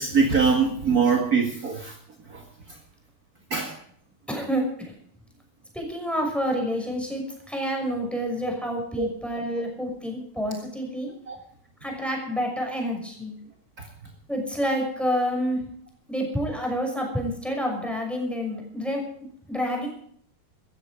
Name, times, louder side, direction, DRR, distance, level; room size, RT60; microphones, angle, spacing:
voice 1, 0.0-1.9 2.3-2.4 3.5-3.7 9.0-9.1 11.3-11.4 13.8-13.9, right 5 dB, 45° right, 2 dB, 1.2 m, -22 dB
voice 2, 4.3-4.9 5.7-11.1 11.8-13.4 14.3-15.6 16.1-19.0 19.5-19.9, equal, ahead, 1 dB, 5.7 m, -28 dB
16.5 x 14.5 x 5.1 m, 0.63 s
omnidirectional pair, 4.7 m